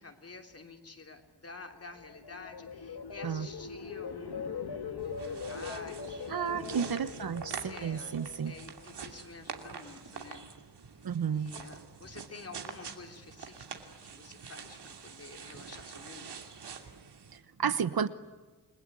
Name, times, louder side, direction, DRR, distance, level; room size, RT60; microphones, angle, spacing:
voice 1, 0.0-6.9 7.7-8.2 8.4-10.4 10.8-11.0 11.3-13.7 14.0-16.4, left 3 dB, 35° left, 4 dB, 3.0 m, -49 dB
sound 1, 1.9-9.0 9.4-9.8, left 6 dB, 75° left, 2.4 m, -41 dB
sound 2, 5.0-17.4, right 6 dB, 80° right, 2.8 m, -46 dB
voice 2, 6.3-8.6 11.0-11.5 17.3-18.1, right 7 dB, 65° right, 13 dB, 1.1 m, -32 dB
29.5 x 21.0 x 9.7 m, 1.3 s
wide cardioid pair, 155°, 40 cm